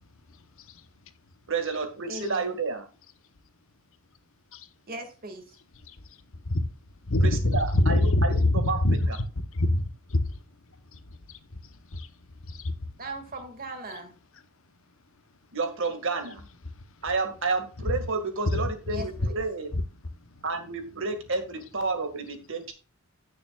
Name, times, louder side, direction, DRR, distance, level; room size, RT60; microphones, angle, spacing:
voice 1, 1.5-2.9 7.2-8.4 8.7-8.8 9.1-9.2 15.5-16.5 17.0-19.7 20.4-22.7, right 3 dB, 60° right, 2.0 m, -30 dB
voice 2, 2.1-2.6 4.9-5.4 13.0-14.1 18.9-19.4, right 2 dB, 40° right, 2.2 m, -39 dB
voice 3, 7.1-9.1 9.4-10.4 10.9-11.4 11.9-12.1 12.5-12.7 18.5-18.6 19.2-19.3 19.7-19.8, left 1 dB, 60° left, 1.0 m, -25 dB
15.5 x 6.8 x 2.4 m
head